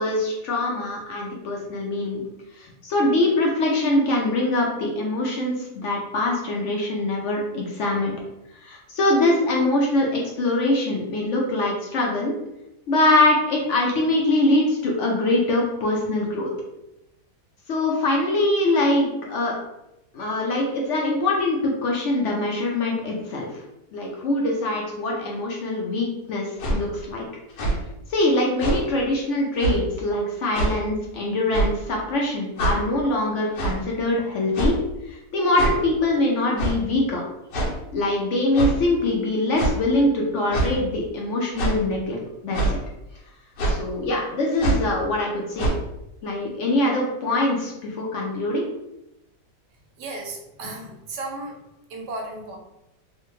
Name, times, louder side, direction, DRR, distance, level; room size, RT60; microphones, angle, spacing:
voice 1, 0.0-2.2 2.6-8.1 8.6-12.3 12.9-16.5 17.7-19.5 20.1-23.5 23.9-27.2 28.1-34.8 35.1-37.2 37.9-42.8 43.7-45.7 46.2-48.6, left 2 dB, 70° left, -1 dB, 0.7 m, -23 dB
sound 1, 26.6-26.8 27.5-27.8 28.6-28.8 29.6-29.8 30.5-30.7 31.5-31.8 32.6-32.8 33.5-33.8 34.5-34.9 35.5-35.8 36.6-36.8 37.5-37.7 38.5-38.8 39.5-39.8 40.5-40.7 41.6-41.8 42.5-42.8 43.6-43.8 44.5-44.9 45.6-45.7, right 2 dB, 85° left, 1.4 m, -23 dB
voice 2, 50.0-51.6 51.9-52.6, right 2 dB, 80° right, 1 dB, 1.3 m, -34 dB
3.4 x 2.1 x 3.0 m, 0.88 s
omnidirectional pair, 1.8 m